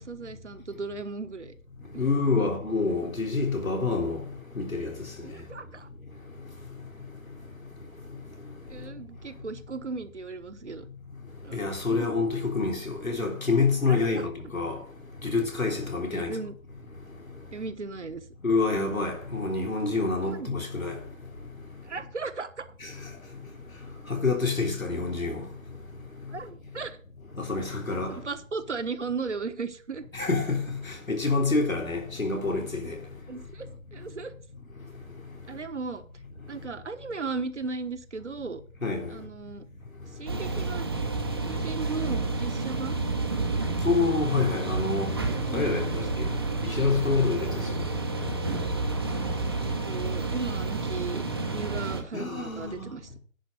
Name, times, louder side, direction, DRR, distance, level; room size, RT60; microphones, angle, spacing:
voice 1, 0.0-1.5 1.9-2.5 5.2-5.9 8.7-10.8 11.4-11.6 11.9-12.1 13.9-14.3 16.1-16.5 17.5-18.3 20.2-20.6 21.8-22.7 26.3-27.0 28.1-30.0 33.3-34.3 35.5-36.0 36.5-38.6 39.1-39.6 40.1-40.9 41.4-43.0 45.3-46.0 47.5-47.7 49.6-53.2, right 4 dB, 60° right, 1.3 m, -36 dB
voice 2, 2.0-4.2 4.6-4.9 11.5-14.8 15.2-16.3 18.4-20.9 24.1-25.3 27.5-28.2 30.1-30.6 31.1-33.0 38.8-39.1 43.8-45.2 45.5-45.8 46.8-47.5 52.1-52.9, left 4 dB, 80° left, 3.5 m, -27 dB
sound 1, 40.3-52.0, right 3 dB, 20° right, 0.8 m, -30 dB
10.0 x 5.6 x 6.7 m
figure-of-eight pair, 155°, 40 cm